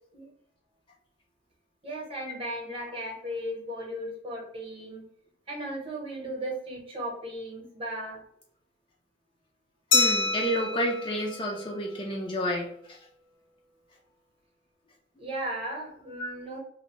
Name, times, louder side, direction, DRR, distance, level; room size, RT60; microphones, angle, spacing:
voice 1, 1.8-5.0 5.5-8.2 15.2-16.6, right 1 dB, 30° right, -1 dB, 0.8 m, -36 dB
Glass, 9.9-12.4, left 3 dB, 75° left, 0.6 m, -28 dB
voice 2, 9.9-13.0 16.2-16.4, equal, 25° left, 0 dB, 0.3 m, -30 dB
2.6 x 2.0 x 2.9 m, 0.68 s
head